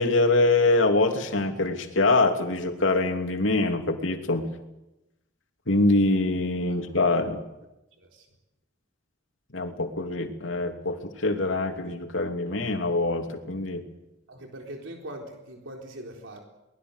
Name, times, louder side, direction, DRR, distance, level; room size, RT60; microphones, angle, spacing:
voice 1, 0.0-4.5 5.7-7.4 9.5-13.8, left 2 dB, 90° left, 4 dB, 2.9 m, -24 dB
voice 2, 14.3-16.4, right 1 dB, 85° right, 1 dB, 4.0 m, -41 dB
23.5 x 20.0 x 8.1 m, 0.95 s
head